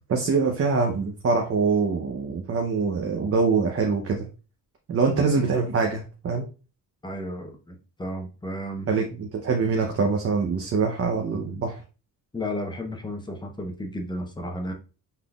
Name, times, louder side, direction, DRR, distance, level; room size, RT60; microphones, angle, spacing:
voice 1, 0.1-4.3 4.9-6.5 8.9-11.8, right 4 dB, 40° right, 2 dB, 0.7 m, -24 dB
voice 2, 7.0-8.9 12.3-14.7, left 1 dB, 15° left, 3 dB, 0.8 m, -33 dB
5.7 x 3.8 x 2.3 m, 0.34 s
cardioid pair, 145°, 35 cm